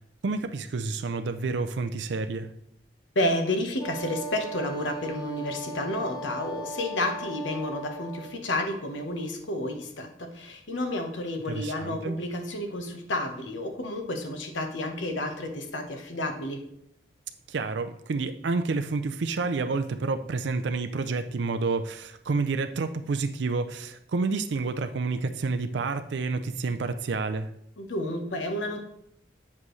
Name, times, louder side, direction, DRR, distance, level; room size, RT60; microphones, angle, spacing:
voice 1, 0.2-2.5 11.5-12.2 17.5-27.5, right 4 dB, 70° right, 8 dB, 0.4 m, -29 dB
voice 2, 3.1-16.6 27.8-28.8, left 1 dB, 90° left, 4 dB, 1.1 m, -31 dB
Wind instrument woodwind instrument, 3.8-8.4, right 2 dB, 20° left, 0.8 m, -38 dB
8.3 x 7.5 x 3.1 m, 0.75 s
head